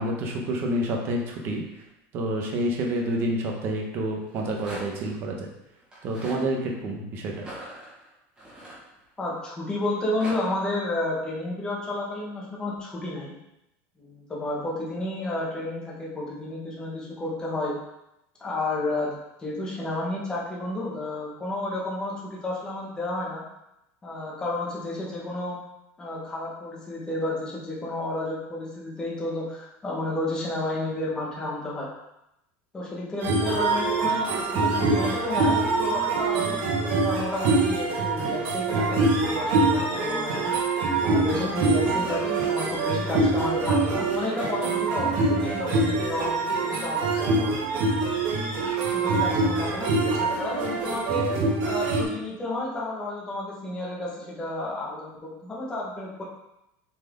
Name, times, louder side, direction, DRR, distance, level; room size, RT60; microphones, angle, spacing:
voice 1, 0.0-1.6 2.1-5.5 6.0-7.4, right 1 dB, 35° right, 1 dB, 1.2 m, -28 dB
Rattle, 4.2-5.1 5.8-6.4 7.3-9.3 9.8-10.4, right 1 dB, 10° right, 2.1 m, -42 dB
voice 2, 9.2-13.3 14.0-17.8 18.4-19.1 19.4-23.4 24.0-25.6 26.0-31.9 32.7-36.6 37.0-40.5 41.1-47.8 48.9-51.3 51.6-56.2, left 1 dB, 10° left, -5 dB, 1.5 m, -31 dB
sound 1, 33.2-52.0, right 3 dB, 55° right, 1.9 m, -24 dB
7.7 x 4.7 x 3.8 m, 0.86 s
cardioid pair, 180°, 7 cm